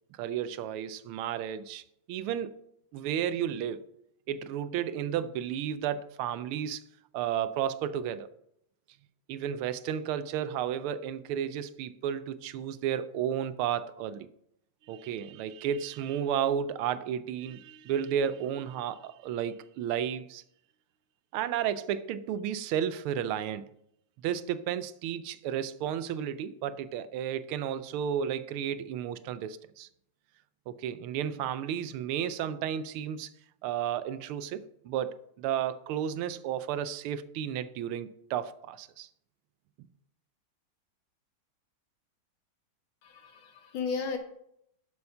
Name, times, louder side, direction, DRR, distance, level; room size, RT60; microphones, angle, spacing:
voice 1, 0.1-1.8 2.1-2.6 2.9-3.8 4.3-6.8 7.1-8.3 9.3-14.3 14.9-20.4 21.3-23.7 24.2-29.9 30.7-33.3 33.6-39.1, right 9 dB, 85° right, 1.5 m, -32 dB
voice 2, 43.0-44.2, left 5 dB, 70° left, 2.1 m, -34 dB
7.8 x 7.1 x 5.5 m
omnidirectional pair, 2.3 m